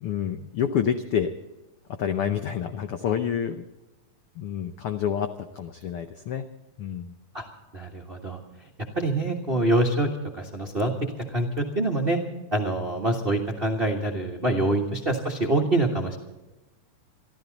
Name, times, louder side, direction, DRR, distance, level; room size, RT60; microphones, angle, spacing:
voice 1, 0.0-1.3 2.0-3.6 4.4-5.3 5.5-6.4 6.8-7.1 14.6-14.8, left 8 dB, 85° left, 8 dB, 1.2 m, -28 dB
voice 2, 7.7-8.4 8.9-10.1 10.3-10.9 11.3-12.2 12.5-16.2, right 1 dB, 35° right, 2 dB, 0.9 m, -25 dB
24.0 x 14.0 x 4.0 m, 1.1 s
omnidirectional pair, 3.6 m